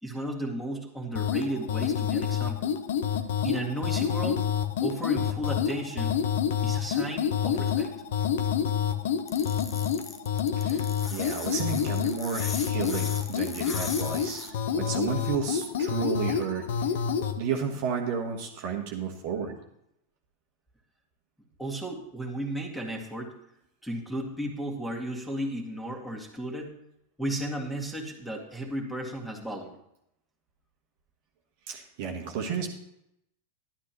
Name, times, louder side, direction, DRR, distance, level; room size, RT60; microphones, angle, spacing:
voice 1, 0.0-2.8 3.4-4.4 4.8-6.2 6.6-7.9 21.6-23.4 23.8-26.7 27.2-29.7, right 1 dB, ahead, 0 dB, 2.1 m, -34 dB
sound 1, 1.2-17.4, left 8 dB, 55° left, 0.8 m, -28 dB
sound 2, 9.3-14.5, left 5 dB, 20° left, 1.0 m, -39 dB
voice 2, 10.6-16.7 17.4-19.5 31.7-32.7, right 6 dB, 50° right, 2 dB, 1.3 m, -32 dB
11.5 x 11.5 x 3.1 m, 0.79 s
figure-of-eight pair, 90°, 0 cm